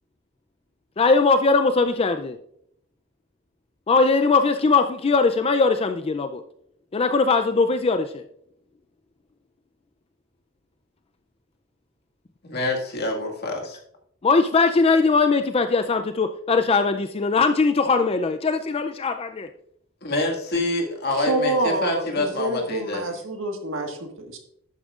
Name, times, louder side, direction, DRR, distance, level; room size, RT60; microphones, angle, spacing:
voice 1, 1.0-2.4 3.9-6.4 6.9-8.2 14.2-19.5, left 4 dB, 30° left, 0.4 m, -20 dB
voice 2, 12.4-13.8 20.0-23.2, left 2 dB, 55° left, 1.9 m, -26 dB
voice 3, 21.3-24.4, right 1 dB, 75° right, 1.6 m, -27 dB
11.5 x 9.0 x 2.4 m
head